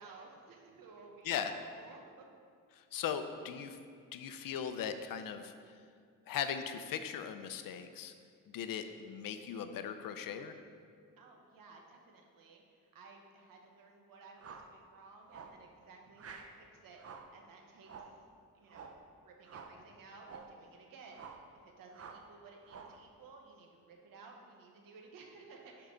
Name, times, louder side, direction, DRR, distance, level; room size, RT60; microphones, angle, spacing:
voice 1, 0.0-2.3 11.2-18.1 18.5-18.9 19.2-25.9, right 4 dB, 80° right, 1 dB, 1.2 m, -56 dB
voice 2, 2.7-3.8 4.1-5.5 6.3-8.1 8.5-10.5, left 8 dB, 80° left, 9 dB, 0.6 m, -38 dB
sound 1, 14.4-14.7 15.3-15.6 16.2-16.6 17.0-17.4 17.8-18.2 18.7-19.0 19.5-19.8 20.2-20.6 21.1-21.5 21.9-22.3 22.7-23.0, right 5 dB, 45° right, 0.7 m, -50 dB
10.5 x 4.7 x 3.8 m, 2.2 s
cardioid pair, 80°, 33 cm